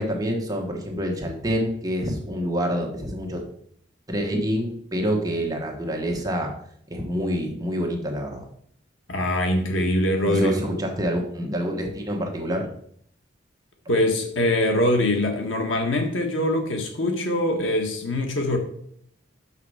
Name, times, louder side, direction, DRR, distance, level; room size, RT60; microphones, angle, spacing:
voice 1, 0.0-3.4 4.1-6.5 6.9-8.5 10.3-12.7, equal, 20° right, 1 dB, 1.3 m, -27 dB
voice 2, 9.1-10.6 13.9-18.6, left 1 dB, 90° left, 3 dB, 1.5 m, -23 dB
6.7 x 5.8 x 4.9 m, 0.66 s
head